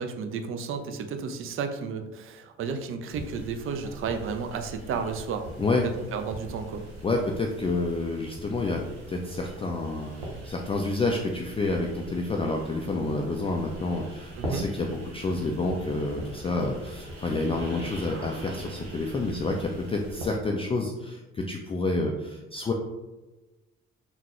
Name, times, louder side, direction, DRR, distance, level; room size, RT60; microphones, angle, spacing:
voice 1, 0.0-5.5 6.1-6.9 14.4-14.7, right 5 dB, 40° right, 7 dB, 0.5 m, -32 dB
sound 1, 3.1-20.3, right 1 dB, 80° right, 0.7 m, -41 dB
voice 2, 7.0-8.8 9.1-22.7, left 2 dB, 20° left, 1 dB, 0.3 m, -29 dB
3.6 x 2.2 x 2.9 m, 1.1 s
hypercardioid pair, 45°, 32 cm